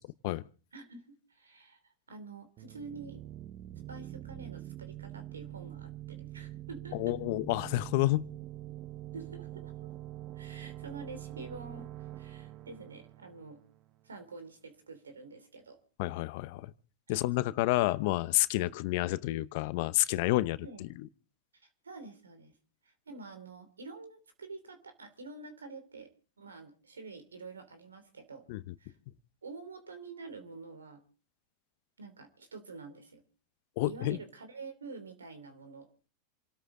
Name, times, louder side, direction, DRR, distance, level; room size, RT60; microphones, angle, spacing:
voice 1, 0.7-3.2 3.9-7.1 8.6-8.8 9.1-9.7 10.3-13.6 14.0-15.8 17.1-17.9 18.6-18.8 20.0-20.2 20.6-20.8 21.5-22.5 22.8-26.1 26.4-28.5 28.8-28.9 29.4-31.0 32.0-33.2 33.9-35.9, right 3 dB, 90° right, 2.9 m, -48 dB
sound 1, 2.6-14.1, right 14 dB, 45° right, 0.9 m, -45 dB
voice 2, 6.9-8.3 16.0-16.7 17.1-20.9 28.5-28.6 33.8-34.2, left 18 dB, 60° left, 0.8 m, -29 dB
27.5 x 13.0 x 3.8 m
hypercardioid pair, 95°, 0 cm